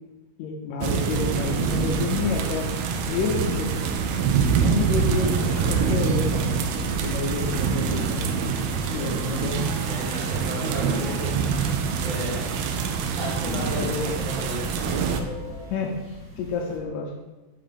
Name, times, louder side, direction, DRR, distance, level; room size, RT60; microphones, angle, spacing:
voice 1, 0.4-2.7 3.1-3.9 4.6-8.3 8.9-9.8 12.0-12.1 13.7-14.1 15.7-15.9 16.4-17.1, left 4 dB, 80° left, 1 dB, 1.8 m, -29 dB
sound 1, 0.8-15.2, right 6 dB, 85° right, 1.4 m, -25 dB
sound 2, 1.2-15.7, equal, 15° right, 1.3 m, -40 dB
sound 3, 4.5-16.8, equal, 5° left, 1.2 m, -41 dB
voice 2, 9.9-11.3 12.0-12.4 13.1-13.9 14.2-14.6, right 1 dB, 60° right, -6 dB, 1.3 m, -33 dB
5.7 x 3.3 x 5.1 m, 1.2 s
omnidirectional pair, 3.4 m